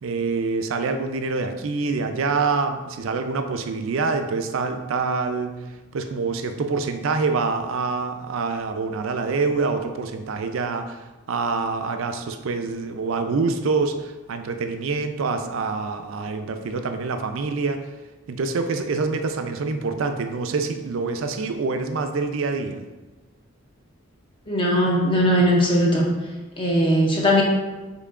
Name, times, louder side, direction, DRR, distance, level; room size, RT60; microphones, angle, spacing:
voice 1, 0.0-5.6 5.9-17.8 18.3-22.8, right 4 dB, 70° right, 7 dB, 0.4 m, -26 dB
voice 2, 24.5-26.1 26.6-27.4, equal, 25° left, -1 dB, 0.5 m, -19 dB
5.6 x 3.8 x 2.4 m, 1.2 s
head